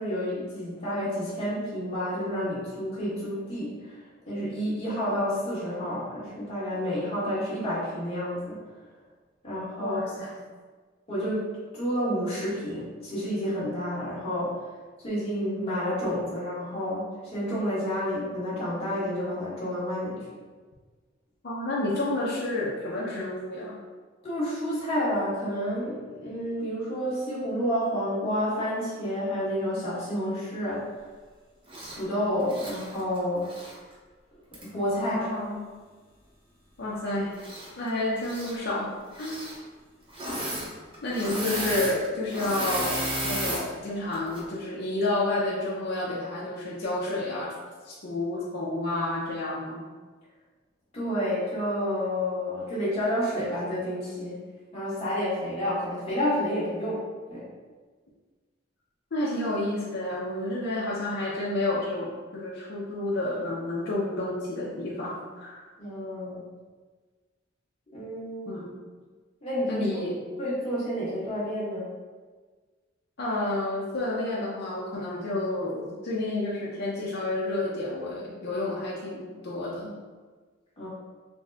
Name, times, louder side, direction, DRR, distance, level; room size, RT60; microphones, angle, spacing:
voice 1, 0.0-3.9 4.3-8.6 9.4-10.0 11.1-14.6 15.0-20.2 24.2-30.8 31.9-33.5 34.6-35.3 50.9-54.3 54.7-57.0 57.3-57.4 65.8-66.4 67.9-68.6 69.4-70.1 70.4-71.9 80.8-80.9, equal, 30° left, -10 dB, 1.5 m, -30 dB
voice 2, 9.8-10.3 21.4-23.8 35.0-35.6 36.8-37.3 37.8-38.9 39.2-39.4 41.0-47.5 47.8-49.8 59.1-65.6 68.5-68.7 69.7-70.2 73.2-79.9, left 2 dB, 60° left, -7 dB, 0.6 m, -30 dB
Engine / Mechanisms, 31.7-32.0 32.4-33.8 34.5-34.6 37.3-37.9 38.2-38.6 39.1-39.6 40.1-40.7 40.9-43.6 44.1-44.4, right 1 dB, 25° right, 0.7 m, -33 dB
4.0 x 2.2 x 3.4 m, 1.4 s
head